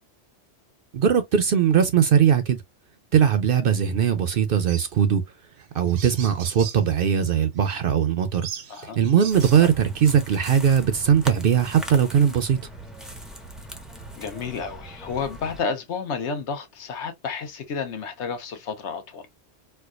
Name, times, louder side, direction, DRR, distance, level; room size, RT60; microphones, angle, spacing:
voice 1, 0.9-2.6 3.1-5.2 5.7-8.5 8.8-12.6, right 8 dB, 60° right, 0.7 m, -20 dB
sound 1, 4.7-4.9 5.6-5.7 5.9-6.8 7.6-7.7 8.4-9.6, right 8 dB, 85° right, 1.0 m, -38 dB
sound 2, 9.3-15.6, right 1 dB, ahead, 0.4 m, -39 dB
voice 2, 14.2-19.2, left 5 dB, 70° left, 1.1 m, -31 dB
4.5 x 2.2 x 2.4 m
omnidirectional pair, 1.2 m